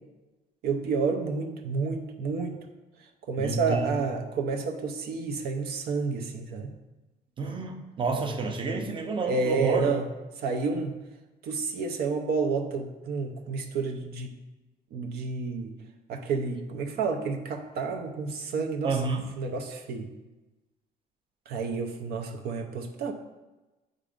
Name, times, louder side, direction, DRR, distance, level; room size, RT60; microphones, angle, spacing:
voice 1, 0.6-2.6 3.2-6.7 9.3-10.1 10.4-10.9 11.4-14.3 14.9-15.7 16.1-19.0 19.4-20.1 21.5-23.1, right 4 dB, 70° right, 3 dB, 0.6 m, -30 dB
voice 2, 3.4-3.9 7.4-9.9 18.8-19.3, right 4 dB, 30° right, 4 dB, 0.6 m, -29 dB
7.4 x 2.5 x 5.0 m, 1.1 s
cardioid pair, 110°, 17 cm